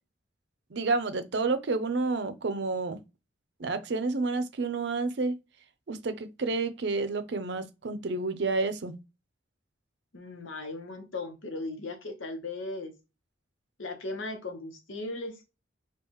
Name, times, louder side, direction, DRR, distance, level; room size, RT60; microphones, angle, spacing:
voice 1, 0.7-3.0 3.6-5.4 5.9-8.9, right 3 dB, 65° right, 0.5 m, -30 dB
voice 2, 10.1-12.9 13.8-15.3, left 2 dB, 90° left, 1.0 m, -37 dB
4.6 x 2.4 x 3.0 m
head